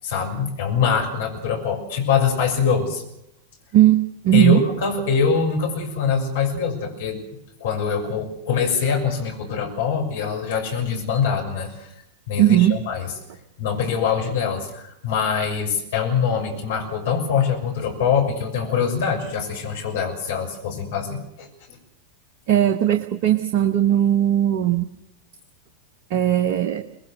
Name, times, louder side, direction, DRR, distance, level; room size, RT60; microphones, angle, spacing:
voice 1, 0.0-3.0 4.3-7.2 7.6-11.9 12.3-13.1 13.6-21.5, left 6 dB, 55° left, 1 dB, 6.3 m, -23 dB
voice 2, 3.7-4.6 12.4-12.8 22.5-24.9 26.1-26.8, right 12 dB, 45° right, 9 dB, 1.1 m, -18 dB
25.5 x 20.5 x 6.5 m, 0.82 s
figure-of-eight pair, 90°, 0 cm